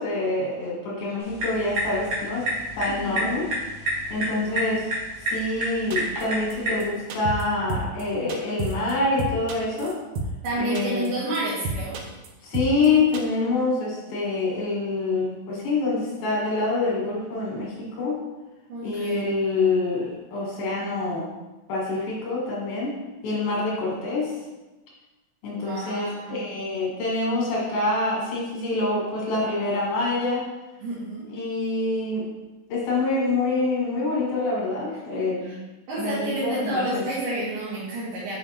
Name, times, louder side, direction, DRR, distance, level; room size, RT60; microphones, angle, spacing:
voice 1, 0.0-2.5 2.7-3.5 4.1-4.9 5.3-10.0 10.6-11.1 12.4-18.2 18.8-21.3 21.7-23.0 23.2-24.4 25.4-30.4 31.3-32.3 32.7-35.5 36.0-37.0, left 3 dB, 85° left, -4 dB, 3.4 m, -26 dB
sound 1, 1.2-6.9, right 1 dB, 55° right, 1.9 m, -30 dB
voice 2, 2.8-3.3 10.4-12.0 18.7-19.3 25.5-26.4 30.8-31.2 35.1-35.6 35.9-38.3, right 1 dB, 70° right, -9 dB, 2.8 m, -30 dB
sound 2, 5.9-6.2 6.5-6.6 6.8-6.9 7.1-7.4 7.7-8.0 8.3-8.9 9.2-10.5 10.7-11.1 11.3-11.4 11.6-12.3 12.5-12.9 13.1-13.2, right 4 dB, 85° right, 1.6 m, -30 dB
6.8 x 5.0 x 2.8 m, 1.1 s
omnidirectional pair, 4.1 m